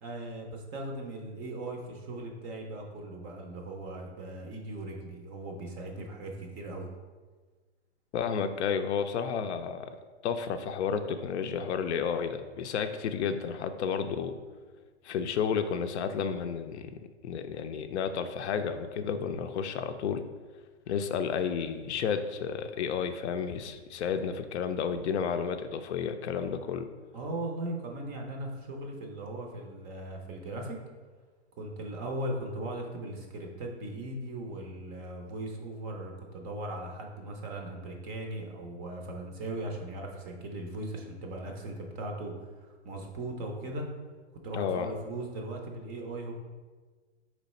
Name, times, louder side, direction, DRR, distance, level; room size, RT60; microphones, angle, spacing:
voice 1, 0.0-6.9 27.1-30.8 31.6-43.9 44.4-46.3, right 1 dB, 25° right, 2 dB, 0.5 m, -38 dB
voice 2, 8.1-10.0 10.2-14.4 15.0-20.2 20.9-26.9 44.5-44.9, left 7 dB, 70° left, 8 dB, 0.5 m, -31 dB
4.2 x 3.1 x 4.1 m, 1.4 s
hypercardioid pair, 140°, 35 cm